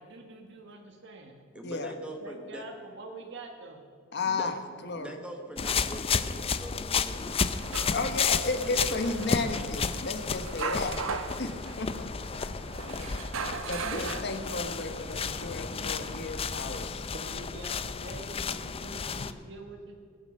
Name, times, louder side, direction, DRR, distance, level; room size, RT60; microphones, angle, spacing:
voice 1, 0.0-1.4 2.1-3.8 11.7-11.8 12.7-12.9 16.0-16.1 17.1-20.0, right 2 dB, 60° right, 3 dB, 1.2 m, -46 dB
voice 2, 1.5-2.6 4.2-4.5 4.9-7.4 8.1-9.3 13.9-14.2, right 1 dB, 5° right, 3 dB, 1.0 m, -43 dB
voice 3, 4.1-4.5 4.8-5.1 7.9-11.0 11.4-12.1 12.4-12.5 12.9-13.2 13.7-17.0, left 3 dB, 55° left, 8 dB, 1.1 m, -33 dB
sound 1, 5.6-19.3, left 5 dB, 30° left, 0.5 m, -32 dB
sound 2, 7.1-16.9, right 4 dB, 85° right, 1.0 m, -40 dB
20.5 x 7.0 x 6.6 m, 2.2 s
head